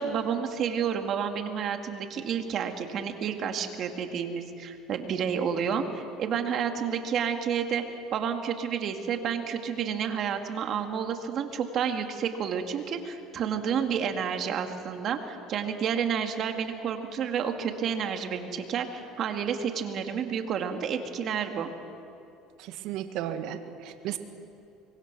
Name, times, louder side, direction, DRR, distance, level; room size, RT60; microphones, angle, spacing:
voice 1, 0.0-7.8 8.1-21.7, right 7 dB, 50° right, 5 dB, 2.4 m, -30 dB
voice 2, 22.6-24.2, right 11 dB, 70° right, 8 dB, 1.7 m, -34 dB
24.5 x 23.0 x 6.3 m, 2.7 s
supercardioid pair, 95°, 0 cm